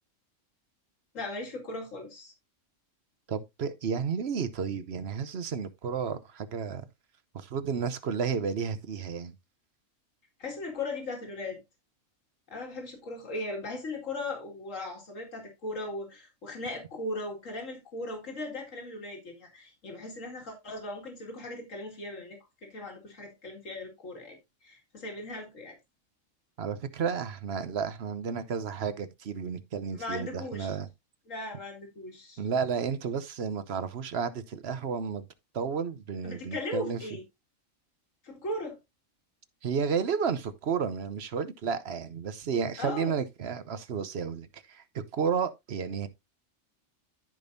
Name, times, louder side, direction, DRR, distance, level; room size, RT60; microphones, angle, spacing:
voice 1, 1.1-2.3 10.4-11.6 12.5-24.4 24.6-25.8 29.9-30.7 31.3-32.4 36.2-37.2 38.2-38.8 42.8-43.1, left 2 dB, 80° left, 2.6 m, -38 dB
voice 2, 3.3-6.8 7.3-9.3 26.6-30.9 32.4-35.2 35.5-37.0 39.6-46.1, right 6 dB, 60° right, 1.0 m, -32 dB
14.5 x 5.3 x 2.6 m
omnidirectional pair, 1.3 m